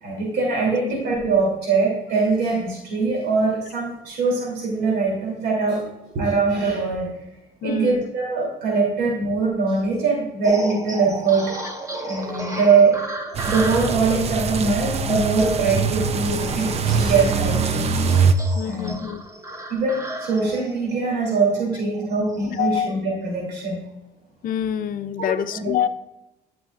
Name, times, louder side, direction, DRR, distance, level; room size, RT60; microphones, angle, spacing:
voice 1, 0.0-5.8 6.1-7.1 7.6-11.5 12.0-13.0 13.4-17.9 18.6-18.9 19.7-23.8 25.2-25.7, right 4 dB, 80° right, -2 dB, 3.0 m, -22 dB
voice 2, 0.7-1.0 7.6-8.0 18.5-19.2 22.5-22.9 24.4-25.9, left 9 dB, 55° left, 12 dB, 0.6 m, -26 dB
sound 1, 10.4-22.7, right 2 dB, 20° right, 1.4 m, -33 dB
sound 2, 13.3-18.3, right 5 dB, 40° right, 0.6 m, -23 dB
13.5 x 6.1 x 2.5 m, 0.94 s
cardioid pair, 110°, 17 cm